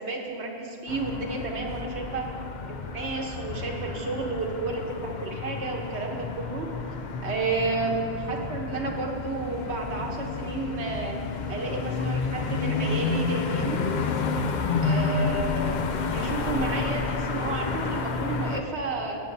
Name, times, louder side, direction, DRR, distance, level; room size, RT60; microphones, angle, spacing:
voice 1, 0.0-2.2 2.7-6.7 7.2-11.1 11.5-13.8 14.8-15.8 16.1-19.2, right 3 dB, 85° right, 1 dB, 1.4 m, -31 dB
sound 1, 0.9-18.6, left 4 dB, 55° left, 0.6 m, -30 dB
13.5 x 8.7 x 2.7 m, 2.7 s
omnidirectional pair, 1.1 m